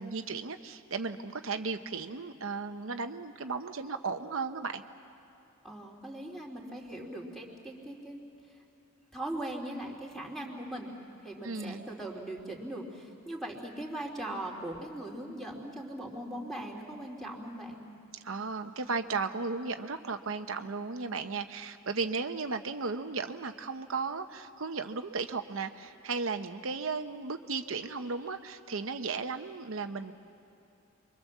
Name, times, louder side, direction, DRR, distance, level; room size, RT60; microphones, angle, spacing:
voice 1, 0.0-4.8 11.4-11.9 18.2-30.1, right 4 dB, 70° right, 7 dB, 0.9 m, -35 dB
voice 2, 5.6-8.2 9.1-10.9 11.2-17.8, right 1 dB, ahead, -1 dB, 3.3 m, -40 dB
28.0 x 23.5 x 7.3 m, 2.9 s
head